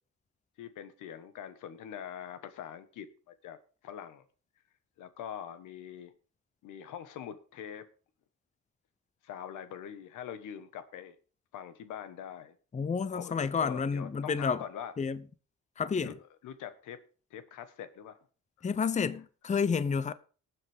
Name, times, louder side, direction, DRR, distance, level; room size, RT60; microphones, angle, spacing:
voice 1, 0.6-3.6 3.8-4.2 5.0-6.1 6.6-7.8 9.2-11.1 11.5-12.6 13.1-14.9 16.0-16.2 16.4-17.0 17.3-18.2, left 9 dB, 85° left, 1.4 m, -43 dB
voice 2, 12.7-14.6 15.0-15.2 15.8-16.2 18.6-20.1, left 5 dB, 25° left, 0.7 m, -30 dB
19.0 x 7.6 x 3.5 m
cardioid pair, 90°, 30 cm